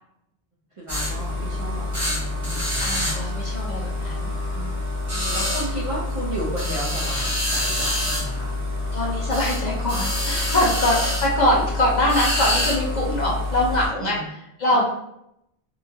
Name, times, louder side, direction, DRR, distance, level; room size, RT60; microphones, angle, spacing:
voice 1, 0.8-3.7 4.5-4.8 5.3-8.6 14.0-14.2 14.7-14.8, right 1 dB, 40° right, -6 dB, 0.5 m, -34 dB
sound 1, 0.9-13.9, left 1 dB, 15° right, 0.9 m, -26 dB
voice 2, 2.8-4.3 5.1-5.5 8.9-14.8, left 1 dB, 50° left, -4 dB, 0.6 m, -23 dB
2.8 x 2.3 x 2.6 m, 0.80 s
omnidirectional pair, 1.1 m